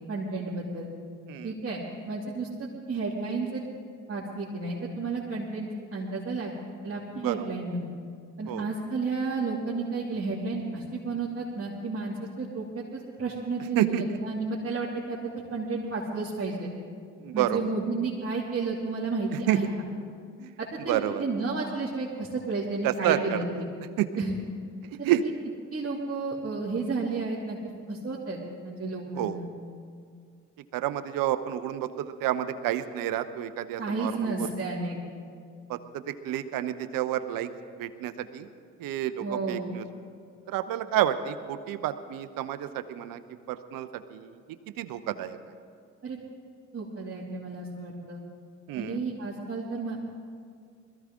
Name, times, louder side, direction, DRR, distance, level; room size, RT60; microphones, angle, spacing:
voice 1, 0.1-0.9 1.4-3.7 4.1-6.6 6.8-7.8 8.4-16.7 17.3-19.7 20.6-23.7 24.2-24.4 25.2-25.3 25.7-27.6 27.9-29.5 33.8-35.0 39.2-39.7 46.0-46.2 46.7-48.2 48.7-50.0, right 3 dB, 40° right, -6 dB, 2.7 m, -32 dB
voice 2, 13.8-14.2 17.2-17.6 19.3-19.6 20.4-20.5 20.9-21.2 22.8-23.4 24.0-24.2 24.9-25.2 29.1-29.4 30.7-34.5 35.7-37.5 37.8-38.5 38.8-39.9 40.5-43.2 43.5-44.4 44.8-45.4 48.7-49.0, right 12 dB, 70° right, 12 dB, 0.8 m, -29 dB
21.0 x 14.0 x 3.7 m, 2.1 s
hypercardioid pair, 45°, 35 cm